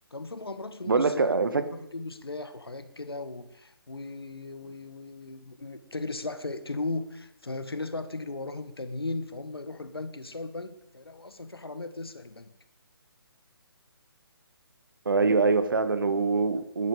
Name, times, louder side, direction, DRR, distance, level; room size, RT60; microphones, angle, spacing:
voice 1, 0.1-12.5, left 3 dB, 75° left, 10 dB, 1.6 m, -37 dB
voice 2, 0.9-1.7 15.0-16.9, right 4 dB, 60° right, 12 dB, 1.4 m, -24 dB
17.0 x 12.0 x 5.0 m, 0.85 s
figure-of-eight pair, 140°, 13 cm